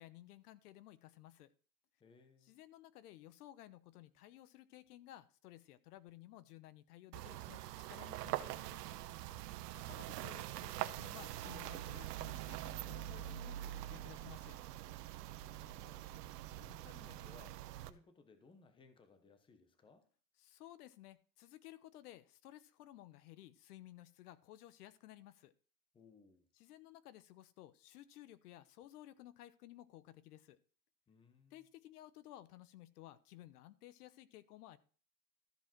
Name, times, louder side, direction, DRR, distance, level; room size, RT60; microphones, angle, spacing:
voice 1, 0.0-1.5 2.4-8.8 9.7-14.6 20.4-25.5 26.6-30.6 31.5-34.8, left 14 dB, 65° left, 0.9 m, -56 dB
voice 2, 2.0-2.5 9.3-9.7 15.3-16.1 16.5-20.1 25.9-26.5 31.1-31.7, left 4 dB, 10° left, 0.9 m, -64 dB
sound 1, 7.1-17.9, right 14 dB, 70° right, 1.0 m, -44 dB
13.5 x 4.9 x 6.0 m
supercardioid pair, 145°, 49 cm